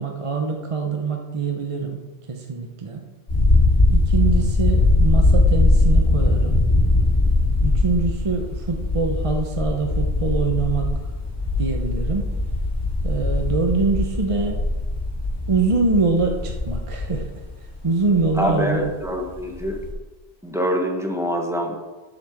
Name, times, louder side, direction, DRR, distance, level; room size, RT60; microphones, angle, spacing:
voice 1, 0.0-2.0 2.3-3.0 3.9-6.6 7.6-10.9 11.6-12.3 13.0-14.6 15.5-17.3 17.8-18.8, right 4 dB, 30° right, 2 dB, 0.9 m, -24 dB
sound 1, 3.3-19.0 19.4-19.9, left 2 dB, 80° left, 2.9 m, -20 dB
voice 2, 18.3-19.8 20.4-21.8, equal, 5° right, 1 dB, 1.2 m, -25 dB
8.4 x 6.1 x 6.5 m, 1.2 s
omnidirectional pair, 1.1 m